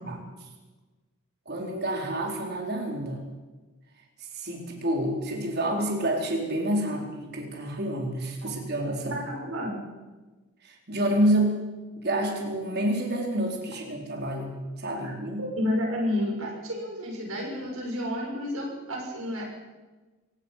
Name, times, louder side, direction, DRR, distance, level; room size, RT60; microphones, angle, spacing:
voice 1, 1.5-3.2 4.2-9.2 10.6-11.6 12.0-15.4 17.4-17.5, right 1 dB, 50° right, 1 dB, 4.3 m, -28 dB
voice 2, 9.1-9.8 15.0-15.1 15.4-19.4, left 1 dB, 80° right, -1 dB, 6.1 m, -30 dB
26.5 x 18.0 x 5.9 m, 1.2 s
head